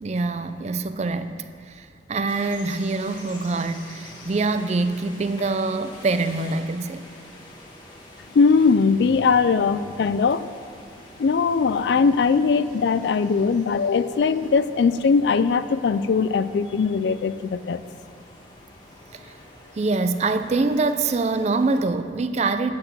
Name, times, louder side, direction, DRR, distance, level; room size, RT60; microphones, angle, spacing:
voice 1, 0.0-7.1 19.1-19.3 19.8-22.7, right 3 dB, 35° right, 11 dB, 0.4 m, -25 dB
sound 1, 2.3-21.8, left 1 dB, 25° left, 1.4 m, -46 dB
voice 2, 8.3-10.5 11.2-17.8, left 5 dB, 60° left, 14 dB, 0.3 m, -20 dB
8.7 x 6.6 x 7.6 m, 2.2 s
head